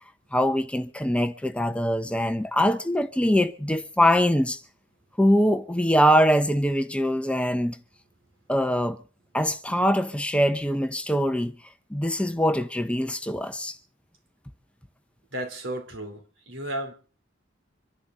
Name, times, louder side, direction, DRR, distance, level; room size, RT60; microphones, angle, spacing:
voice 1, 0.3-4.6 5.2-7.8 8.5-9.0 9.3-11.5 11.9-13.8, equal, 5° left, 0.7 m, -23 dB
voice 2, 15.3-16.9, right 1 dB, 75° right, 3.8 m, -34 dB
26.0 x 11.0 x 4.0 m
head